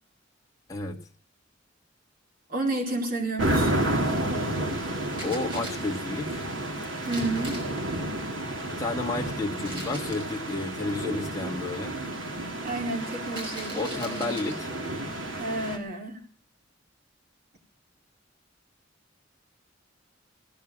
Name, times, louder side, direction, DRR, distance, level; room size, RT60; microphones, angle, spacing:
voice 1, 0.7-1.0 5.2-6.5 8.8-11.9 13.7-14.7, left 3 dB, 20° left, 0 dB, 1.8 m, -31 dB
voice 2, 2.5-3.7 7.1-7.6 12.6-14.7 15.3-16.2, right 2 dB, 50° right, 1 dB, 4.5 m, -31 dB
sound 1, 3.4-15.8, right 1 dB, 75° right, 3.0 m, -31 dB
sound 2, 5.1-6.0 7.1-7.8 9.6-10.3 13.3-14.6, right 1 dB, 25° right, 5.5 m, -41 dB
18.0 x 10.5 x 6.3 m, 0.39 s
head